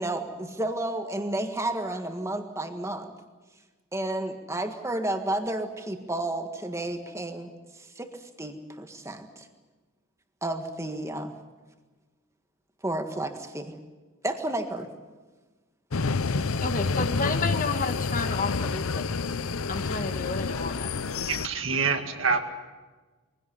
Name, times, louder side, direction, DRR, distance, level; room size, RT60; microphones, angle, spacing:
voice 1, 0.0-3.1 3.9-9.5 10.4-11.3 12.8-13.7 14.2-14.9, right 1 dB, 15° right, 6 dB, 1.7 m, -32 dB
sound 1, 15.9-21.5, left 4 dB, 70° left, 0.7 m, -28 dB
voice 2, 16.6-19.2 19.7-20.9, left 4 dB, 35° left, 7 dB, 1.4 m, -31 dB
voice 3, 21.2-22.4, right 5 dB, 60° right, 6 dB, 2.0 m, -26 dB
22.5 x 17.0 x 9.7 m, 1.3 s
head